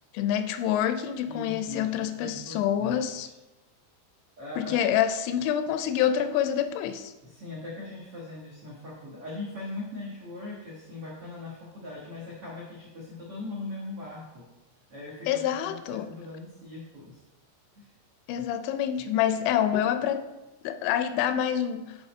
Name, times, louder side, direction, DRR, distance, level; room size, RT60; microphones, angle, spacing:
voice 1, 0.1-3.3 4.6-7.1 15.3-16.1 18.3-20.3 20.6-22.0, left 10 dB, 85° left, 9 dB, 2.8 m, -27 dB
voice 2, 1.2-3.3 4.4-5.0 7.2-14.5 14.9-17.2 17.7-17.9, left 2 dB, 70° right, -4 dB, 1.3 m, -40 dB
9.0 x 5.5 x 4.3 m, 1.1 s
omnidirectional pair, 5.3 m